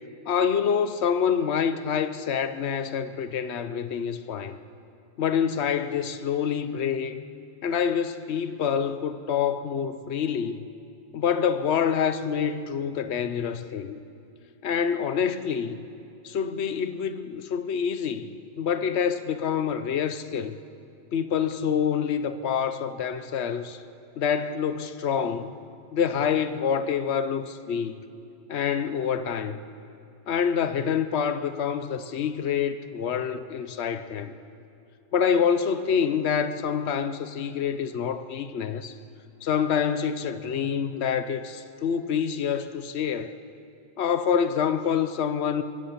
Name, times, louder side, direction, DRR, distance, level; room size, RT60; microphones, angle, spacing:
voice 1, 0.3-4.6 5.2-7.2 7.6-10.6 11.1-14.0 14.6-15.9 16.2-18.3 18.6-20.6 21.1-23.8 24.2-25.5 25.9-27.9 28.5-29.6 30.3-34.3 35.1-38.9 39.4-43.3 44.0-45.6, left 7 dB, 70° left, 0.6 m, -26 dB
25.5 x 22.5 x 5.8 m
omnidirectional pair, 2.2 m